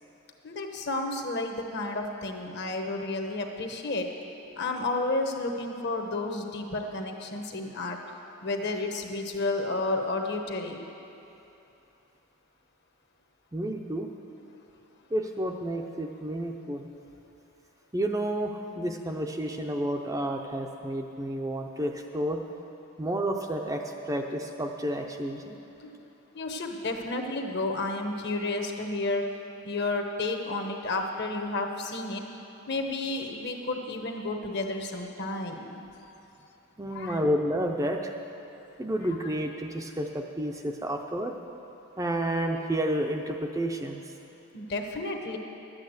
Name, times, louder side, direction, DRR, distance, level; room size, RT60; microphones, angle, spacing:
voice 1, 0.4-4.1 4.6-8.0 8.4-10.8 25.8-25.9 26.3-29.2 29.6-32.2 32.7-35.8 36.9-37.2 44.5-45.4, left 2 dB, 50° left, 4 dB, 1.0 m, -31 dB
voice 2, 13.5-14.1 15.1-16.9 17.9-22.4 23.0-25.6 36.8-38.1 38.8-41.4 42.0-44.0, right 1 dB, 15° right, 2 dB, 0.5 m, -30 dB
11.0 x 8.6 x 8.0 m, 2.9 s
head